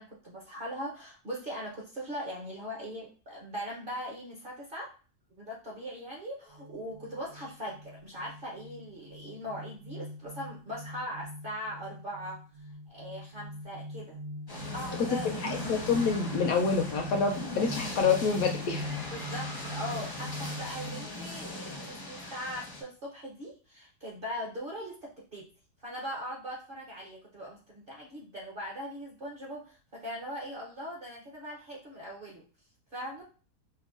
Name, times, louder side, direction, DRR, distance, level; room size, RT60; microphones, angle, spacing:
voice 1, 0.0-4.9 5.4-12.4 12.9-14.2 14.7-15.5 19.1-25.5 25.8-32.4 32.9-33.2, equal, 50° right, -3 dB, 0.7 m, -40 dB
sound 1, 6.5-21.2, equal, 85° right, 0.4 m, -42 dB
sound 2, 14.5-22.8, left 1 dB, 25° left, 0.4 m, -39 dB
voice 2, 15.7-18.9, left 5 dB, 70° left, 3 dB, 0.9 m, -27 dB
5.3 x 2.1 x 2.4 m, 0.37 s
omnidirectional pair, 1.7 m